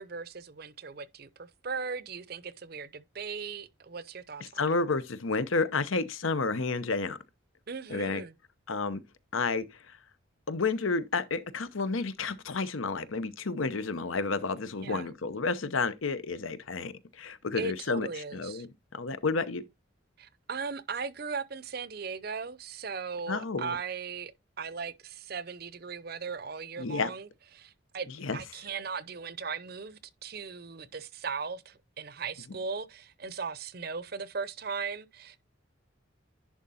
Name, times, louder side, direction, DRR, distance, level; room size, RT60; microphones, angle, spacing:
voice 1, 0.0-4.6 7.7-8.3 14.8-15.1 17.5-18.7 20.2-24.3 24.6-27.3 27.5-35.4, right 5 dB, 50° right, 0.6 m, -38 dB
voice 2, 4.6-7.2 7.9-8.2 8.7-9.0 9.3-10.0 10.5-18.7 18.9-19.7 23.3-23.7 26.8-27.1 28.2-28.4, left 4 dB, 80° left, 0.8 m, -31 dB
11.0 x 3.7 x 4.2 m
head